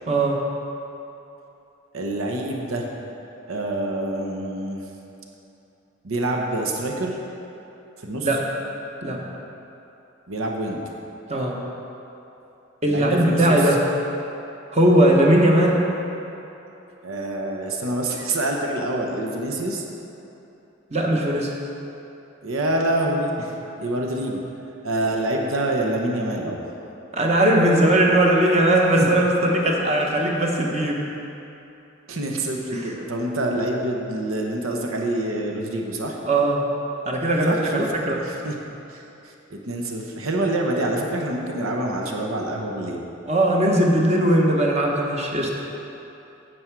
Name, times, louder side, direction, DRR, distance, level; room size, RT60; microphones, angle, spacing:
voice 1, 0.1-0.4 8.2-8.4 9.0-9.2 11.3-11.6 12.8-13.8 14.7-15.8 20.9-21.5 27.1-31.0 32.7-32.8 36.3-36.6 37.1-38.2 43.3-45.5, right 1 dB, 30° right, -1 dB, 1.0 m, -19 dB
voice 2, 1.9-2.9 3.5-4.9 6.0-7.2 8.0-8.4 10.3-10.8 12.4-12.5 12.8-13.8 17.0-19.8 22.4-24.4 24.8-26.6 29.0-29.1 29.4-29.5 32.1-36.2 37.4-37.9 38.2-38.6 38.9-43.0, right 1 dB, 90° right, 1 dB, 1.0 m, -26 dB
9.7 x 7.9 x 4.6 m, 2.9 s
head